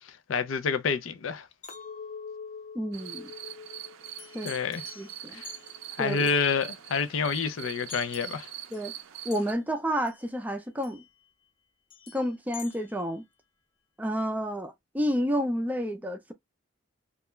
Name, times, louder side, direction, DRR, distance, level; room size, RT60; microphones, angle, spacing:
voice 1, 0.1-1.5 4.4-4.8 5.3-5.5 6.0-8.5, left 5 dB, 85° left, 0.4 m, -28 dB
Chink clink, 1.6-6.0 6.4-6.9, left 5 dB, 40° left, 0.6 m, -45 dB
voice 2, 2.7-3.3 4.3-4.5 5.0-5.4 6.0-6.3 8.7-8.9 9.2-11.0 12.1-13.2 14.0-16.3, equal, 10° right, 0.4 m, -30 dB
sound 1, 2.9-9.5, right 11 dB, 85° right, 0.4 m, -43 dB
sound 2, 4.1-5.9 6.3-6.5 7.9-9.1 9.3-9.8 10.1-10.3 10.8-11.3 11.9-13.2, left 8 dB, 70° left, 1.0 m, -49 dB
2.3 x 2.1 x 3.0 m
head